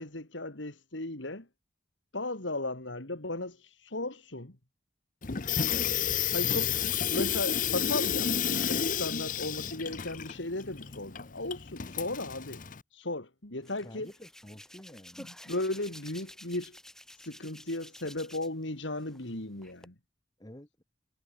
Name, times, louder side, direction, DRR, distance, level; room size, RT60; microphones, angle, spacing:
voice 1, 0.0-1.5 2.1-4.6 6.3-12.6 12.9-14.1 15.2-16.8 17.1-19.9, left 2 dB, 75° left, 3.1 m, -36 dB
Water tap faucet / Sink (filling or washing), 5.2-12.8, left 8 dB, 45° left, 0.8 m, -31 dB
Hands, 13.6-18.6 19.0-19.9, left 1 dB, 5° left, 2.8 m, -51 dB
voice 2, 13.8-15.3 20.4-20.8, equal, 20° left, 2.3 m, -49 dB
head